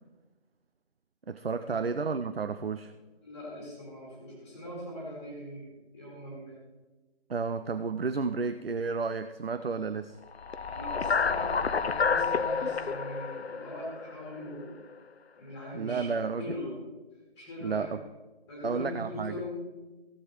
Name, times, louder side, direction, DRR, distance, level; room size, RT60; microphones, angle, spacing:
voice 1, 1.3-2.9 7.3-10.2 15.7-16.5 17.6-18.0 18.6-19.4, right 4 dB, 65° right, 11 dB, 0.6 m, -32 dB
voice 2, 3.2-6.6 10.7-14.8 15.4-16.1 16.4-16.7 17.4-17.9 18.5-19.5, left 1 dB, 5° left, -4 dB, 2.3 m, -41 dB
sound 1, 10.4-14.6, left 5 dB, 80° left, 0.5 m, -29 dB
15.5 x 7.3 x 4.9 m, 1.2 s
figure-of-eight pair, 160°, 31 cm